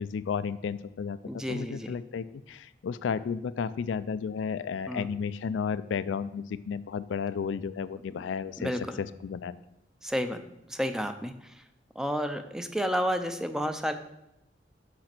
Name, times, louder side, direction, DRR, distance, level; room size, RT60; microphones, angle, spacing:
voice 1, 0.0-9.6, left 6 dB, 80° left, 15 dB, 0.3 m, -33 dB
voice 2, 1.3-2.0 4.9-5.1 8.6-9.0 10.0-10.4 10.7-11.5 12.0-13.9, equal, 5° right, 8 dB, 0.4 m, -31 dB
6.5 x 5.1 x 5.9 m, 0.85 s
head